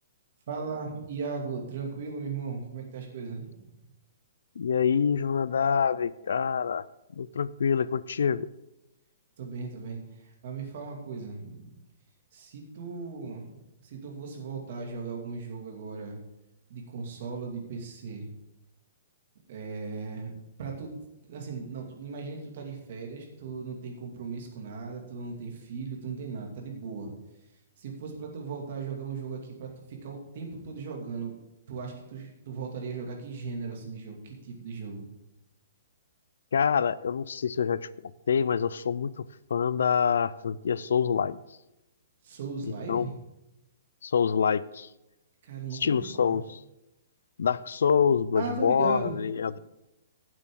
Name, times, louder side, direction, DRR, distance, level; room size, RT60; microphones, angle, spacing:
voice 1, 0.5-3.6 9.4-11.8 12.3-16.2 16.7-18.3 19.5-20.3 20.6-21.0 21.3-27.1 27.8-31.4 31.7-35.0 42.2-43.1 45.4-46.4 48.3-49.2, right 5 dB, 40° right, 1 dB, 2.4 m, -37 dB
voice 2, 4.6-6.8 7.2-8.5 36.5-37.9 38.3-39.3 39.5-41.4 42.9-43.1 44.0-44.9 45.7-46.6 47.4-49.6, left 7 dB, 80° left, 19 dB, 0.5 m, -26 dB
15.0 x 7.9 x 3.8 m, 0.93 s
hypercardioid pair, 180°, 0 cm